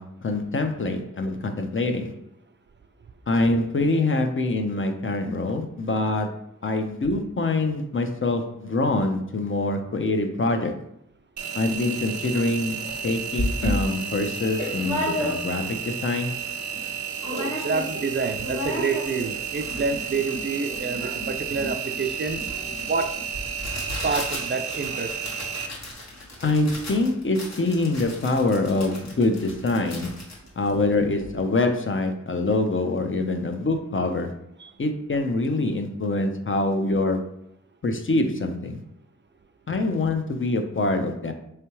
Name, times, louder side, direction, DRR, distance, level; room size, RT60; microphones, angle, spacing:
voice 1, 0.0-2.1 3.3-10.8 11.5-16.3 26.4-30.1 30.6-34.4 34.8-37.3 37.8-38.8 39.7-41.3, left 2 dB, 45° left, 5 dB, 0.7 m, -25 dB
Engine, 11.4-25.7, right 7 dB, 70° right, 0.7 m, -32 dB
sound 1, 12.9-13.0 13.4-15.8 16.2-16.3 16.4-16.9 17.2-18.0 18.3-31.4, left 1 dB, 60° left, 1.6 m, -33 dB
voice 2, 17.3-22.4 22.9-23.1 24.0-25.2 34.6-34.7, right 4 dB, 40° right, 7 dB, 0.4 m, -28 dB
4.5 x 3.3 x 2.9 m, 0.76 s
wide cardioid pair, 70°, 30 cm